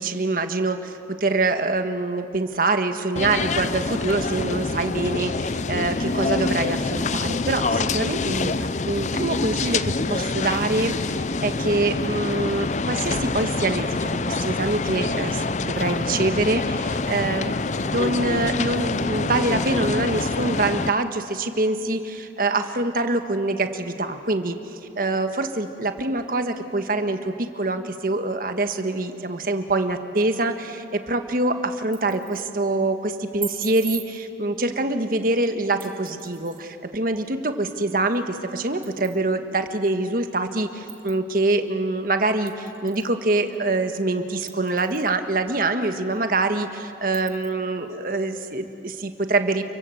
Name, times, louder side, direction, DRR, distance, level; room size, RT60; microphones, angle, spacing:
voice 1, 0.0-17.5 17.9-49.6, right 2 dB, 50° right, 7 dB, 1.6 m, -25 dB
sound 1, 3.2-20.9, left 3 dB, 40° left, 0.6 m, -26 dB
sound 2, 31.7-32.5 33.4-34.1 35.8-36.6 38.1-38.2 38.8-39.2 39.9-40.0 40.9-41.2 42.5-43.1 43.5-43.6 44.5-45.1 45.6-45.7 46.1-46.2 47.1-47.5, right 7 dB, 30° right, 2.0 m, -38 dB
29.0 x 23.5 x 8.0 m, 2.6 s
head